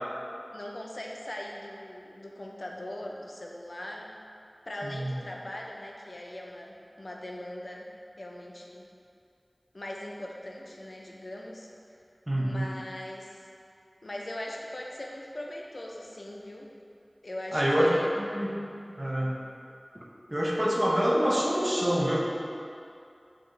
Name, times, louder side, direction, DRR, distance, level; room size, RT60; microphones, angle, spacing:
voice 1, 0.5-4.1 4.7-7.9 8.2-8.9 9.7-11.7 12.4-13.3 14.0-16.7 17.2-18.1, left 1 dB, 70° left, -1 dB, 0.3 m, -40 dB
voice 2, 4.8-5.2 12.3-12.7 17.5-18.6 19.0-19.3 20.3-22.2, equal, 30° right, -3 dB, 0.5 m, -26 dB
4.1 x 2.4 x 3.1 m, 2.5 s
wide cardioid pair, 45°, 0 cm